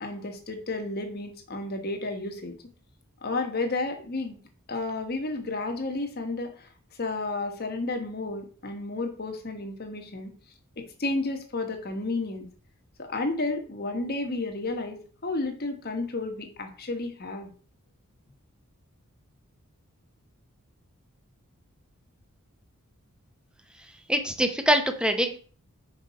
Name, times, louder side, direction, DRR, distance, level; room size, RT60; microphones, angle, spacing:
voice 1, 0.0-2.6 3.2-4.4 4.7-6.7 7.0-10.3 10.8-12.5 13.0-17.5, left 2 dB, 45° left, 5 dB, 1.1 m, -32 dB
voice 2, 24.1-25.4, right 1 dB, 5° right, 6 dB, 0.7 m, -24 dB
5.6 x 5.0 x 4.2 m, 0.42 s
head